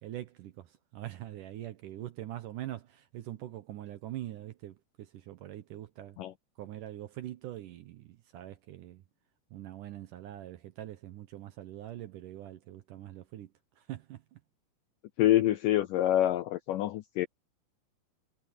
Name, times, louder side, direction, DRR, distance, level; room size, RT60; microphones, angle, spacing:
voice 1, 0.0-6.2 6.6-9.0 9.5-14.4, right 13 dB, 70° right, 2.1 m, -43 dB
voice 2, 15.2-17.3, left 13 dB, 80° left, 1.9 m, -26 dB
omnidirectional pair, 4.6 m